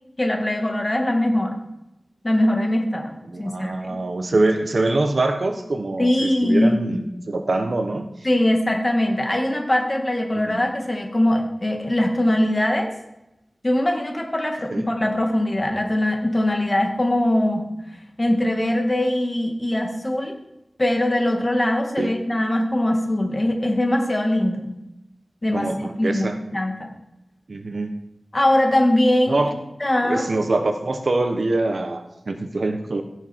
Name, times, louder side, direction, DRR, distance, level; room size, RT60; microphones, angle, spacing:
voice 1, 0.2-1.6 2.2-3.1 3.4-4.0 6.0-6.9 8.2-12.9 13.6-17.7 18.2-20.4 20.8-24.7 25.4-25.7 26.0-26.9 28.3-29.4 29.8-30.2, left 1 dB, 30° left, 2 dB, 2.2 m, -21 dB
voice 2, 3.3-8.1 10.3-10.6 14.7-14.9 22.0-22.1 25.5-26.4 27.5-27.9 29.3-29.5 30.0-33.0, right 2 dB, 65° right, 6 dB, 1.2 m, -24 dB
16.0 x 6.5 x 4.7 m, 0.88 s
wide cardioid pair, 85°, 0 cm